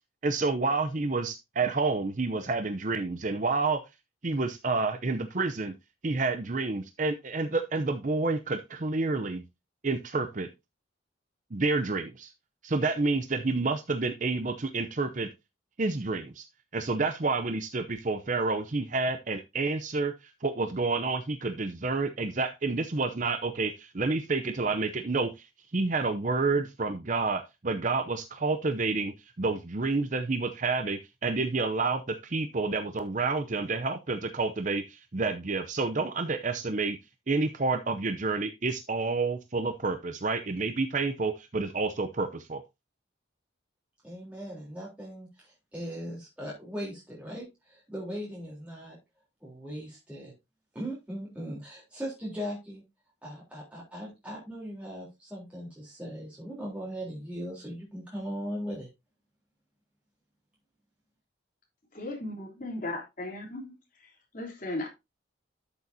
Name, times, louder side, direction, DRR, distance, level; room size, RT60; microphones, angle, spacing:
voice 1, 0.2-3.8 4.2-5.7 6.0-9.4 9.8-10.5 11.5-12.3 12.6-15.3 15.8-16.5 16.7-25.5 25.7-37.0 37.3-42.6, right 3 dB, 40° right, 0.6 m, -29 dB
voice 2, 44.0-49.0 49.4-50.3 50.7-52.8 53.2-58.9, equal, 5° right, 3.5 m, -39 dB
voice 3, 61.9-64.9, left 2 dB, 40° left, 3.2 m, -37 dB
12.0 x 7.0 x 2.7 m
head